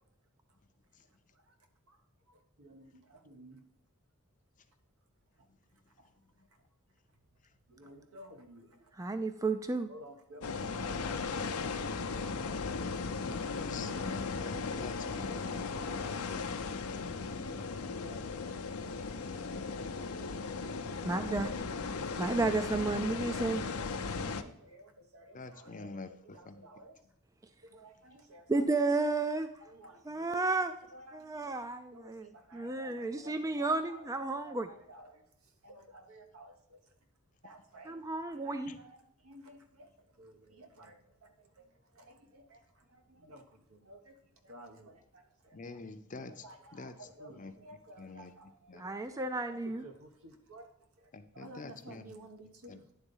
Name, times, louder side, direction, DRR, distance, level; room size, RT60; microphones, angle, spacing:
voice 1, 1.0-1.5 1.9-2.0 2.3-3.6 5.4-5.5 5.9-6.1 6.5-6.6 7.7-9.2 9.9-11.5 12.1-12.4 12.7-13.3 15.2-15.3 15.7-15.9 16.3-17.1 17.5-20.8 22.1-22.4 22.7-23.4 23.8-27.1 27.6-28.6 29.0-29.1 29.6-30.5 30.9-31.6 31.9-34.1 34.4-37.0 37.4-38.0 38.3-45.8 46.3-52.9, right 1 dB, 80° right, 5 dB, 1.2 m, -55 dB
voice 2, 9.0-9.9 21.0-21.5 22.2-23.7 28.5-29.5 30.1-30.7 31.1-32.3 32.5-34.7 37.9-38.8 48.8-49.8, right 3 dB, 15° right, 8 dB, 0.3 m, -32 dB
sound 1, 10.4-24.4, left 4 dB, 80° left, 0.6 m, -37 dB
voice 3, 13.3-17.2 25.3-26.6 38.7-38.8 45.5-46.4 46.7-47.5 48.0-48.3 48.7-48.8 51.1-52.2 52.7-52.8, left 3 dB, 35° left, 8 dB, 0.6 m, -47 dB
10.5 x 3.9 x 5.4 m, 0.79 s
head